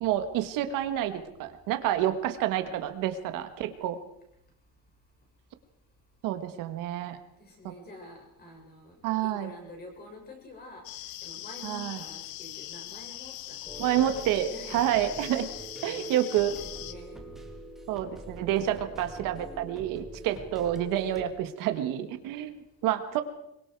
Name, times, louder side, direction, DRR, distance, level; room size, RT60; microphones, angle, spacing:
voice 1, 0.0-4.0 6.2-7.2 9.0-9.5 11.6-12.0 13.8-15.5 15.8-16.5 17.9-22.5 22.8-23.2, right 11 dB, 65° right, 8 dB, 1.6 m, -28 dB
voice 2, 7.4-8.9 9.2-10.8 11.2-14.0 14.4-17.2, left 1 dB, 25° left, 1 dB, 6.6 m, -48 dB
sound 1, 10.8-16.9, left 14 dB, 75° left, 1.3 m, -41 dB
sound 2, 13.7-21.3, right 1 dB, ahead, 2.3 m, -44 dB
24.5 x 23.0 x 4.7 m, 0.80 s
cardioid pair, 180°, 35 cm